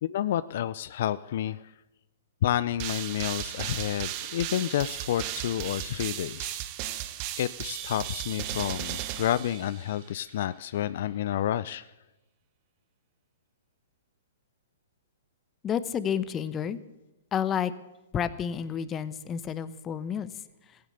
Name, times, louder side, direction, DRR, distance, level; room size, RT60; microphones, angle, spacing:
voice 1, 0.0-1.7 2.4-6.6 7.4-11.8, left 11 dB, 60° left, 16 dB, 0.5 m, -30 dB
sound 1, 2.8-10.1, right 12 dB, 40° right, 1.1 m, -36 dB
voice 2, 15.6-16.8 17.3-17.7 18.1-20.3, left 8 dB, 20° left, 14 dB, 0.9 m, -30 dB
15.5 x 10.5 x 7.9 m, 1.0 s
hypercardioid pair, 130°, 0 cm